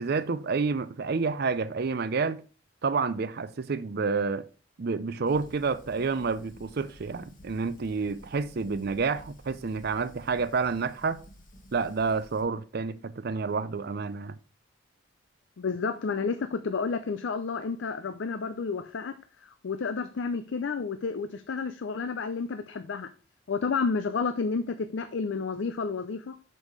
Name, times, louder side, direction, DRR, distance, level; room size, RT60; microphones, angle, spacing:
voice 1, 0.0-2.4 2.8-4.4 4.8-11.2 11.7-14.4, right 4 dB, 50° right, 0.5 m, -29 dB
Fire, 5.3-12.4, equal, 40° left, 1.4 m, -52 dB
voice 2, 15.6-23.1 23.5-26.4, left 5 dB, 65° left, 0.5 m, -31 dB
6.3 x 5.4 x 4.9 m
head